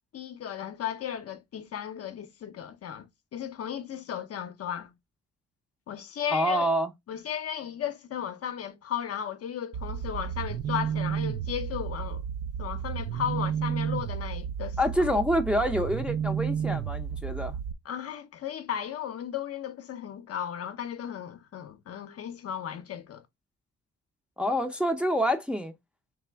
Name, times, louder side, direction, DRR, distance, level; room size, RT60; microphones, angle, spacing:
voice 1, 0.1-4.9 5.9-6.7 7.1-12.2 12.6-15.1 17.8-23.2, left 9 dB, 50° left, 0.6 m, -35 dB
voice 2, 6.3-6.9 14.8-17.6 24.4-25.7, equal, 5° right, 0.6 m, -27 dB
sound 1, 9.7-17.7, right 8 dB, 55° right, 0.4 m, -32 dB
3.4 x 2.9 x 3.3 m
cardioid pair, 90°, 30 cm